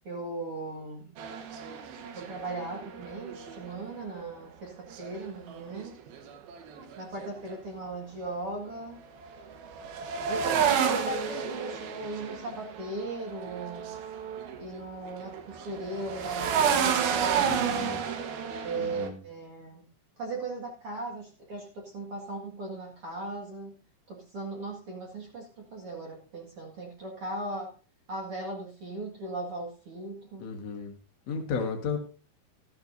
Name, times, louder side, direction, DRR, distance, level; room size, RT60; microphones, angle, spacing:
voice 1, 0.0-1.1 2.1-6.0 7.0-9.0 10.3-13.9 14.6-17.7 18.6-19.9 20.2-23.7 24.1-27.7 28.1-30.5, right 2 dB, 50° right, 0 dB, 1.8 m, -38 dB
sound 1, 1.2-4.0 4.9-7.5 9.2-14.8 15.0-19.1, right 7 dB, 65° right, 2.8 m, -31 dB
voice 2, 17.4-18.0 18.7-19.2 30.4-30.9 31.3-32.0, left 5 dB, 65° left, 2 dB, 1.6 m, -33 dB
14.0 x 12.5 x 2.6 m, 0.36 s
omnidirectional pair, 5.2 m